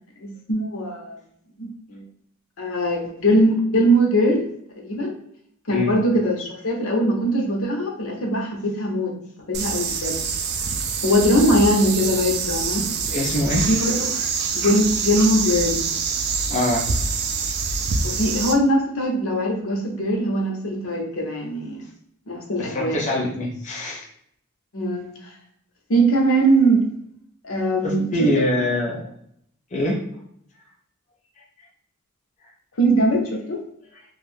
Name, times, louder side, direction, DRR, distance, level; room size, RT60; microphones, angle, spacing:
voice 1, 0.2-1.2 1.6-2.0 2.6-5.1 5.7-9.1 9.5-10.2 11.0-12.9 13.7-14.3 14.5-15.8 18.0-21.8 22.3-23.0 24.7-25.3 25.9-26.9 27.4-28.1 32.8-33.6, right 1 dB, 80° left, 0 dB, 0.8 m, -21 dB
sound 1, 9.5-18.5, right 5 dB, 50° right, 0.4 m, -25 dB
voice 2, 13.1-13.7 16.5-16.9 17.2-17.3 22.6-24.0 27.8-29.1 29.7-30.0, left 1 dB, 35° left, -2 dB, 0.5 m, -24 dB
2.6 x 2.3 x 3.4 m, 0.69 s
head